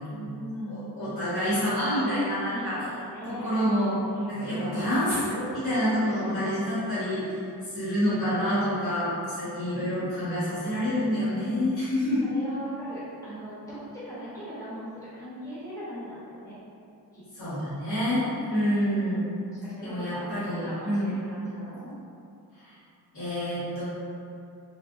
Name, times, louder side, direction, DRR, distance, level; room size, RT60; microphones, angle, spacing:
voice 1, 0.1-1.0 2.5-3.6 4.1-4.6 6.0-6.5 12.3-16.6 17.1-17.6 19.5-21.9, equal, 10° left, -11 dB, 0.9 m, -40 dB
voice 2, 0.7-2.8 3.4-4.0 4.3-7.4 7.7-12.3 17.3-18.2 18.5-19.3 19.8-21.1 22.6-22.7 23.1-23.8, equal, 50° left, -12 dB, 1.3 m, -27 dB
3.4 x 2.8 x 2.6 m, 2.6 s
wide cardioid pair, 150°, 41 cm